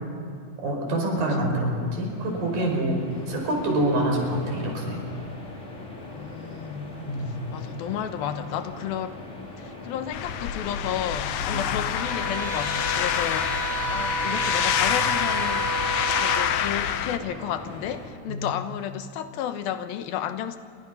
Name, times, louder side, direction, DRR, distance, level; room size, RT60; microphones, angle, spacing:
voice 1, 0.6-3.0 3.3-5.0 7.0-7.5 11.5-11.6 18.3-18.5, right 1 dB, 70° right, 1 dB, 6.8 m, -26 dB
sound 1, 1.5-18.1, left 2 dB, 20° left, 3.7 m, -41 dB
voice 2, 6.1-7.0 7.5-9.2 9.6-15.9 16.2-20.6, left 9 dB, 90° left, 9 dB, 3.0 m, -32 dB
sound 2, 10.1-17.2, left 10 dB, 70° left, 1.9 m, -27 dB
sound 3, 11.9-16.5, right 3 dB, 90° right, 5.2 m, -30 dB
28.5 x 25.0 x 5.5 m, 2.4 s
omnidirectional pair, 4.2 m